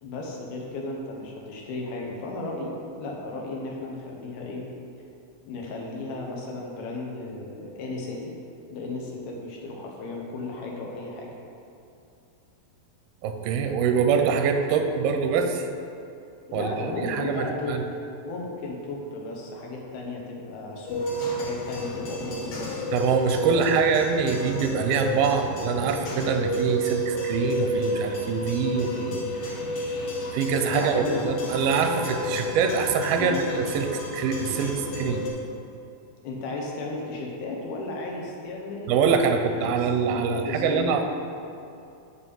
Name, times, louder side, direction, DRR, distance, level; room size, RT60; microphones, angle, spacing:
voice 1, 0.0-4.6 5.4-8.3 8.7-11.3 16.5-17.8 18.2-22.9 23.5-23.8 30.7-31.3 33.2-33.4 36.2-39.0 39.3-41.0, left 2 dB, 90° left, -2 dB, 3.0 m, -34 dB
voice 2, 13.2-15.7 16.5-17.8 22.9-29.2 30.3-35.2 38.9-41.0, right 6 dB, 85° right, 6 dB, 2.5 m, -24 dB
sound 1, 20.9-35.3, equal, 55° left, 1.9 m, -31 dB
8.7 x 3.6 x 6.8 m, 2.6 s
omnidirectional pair, 4.2 m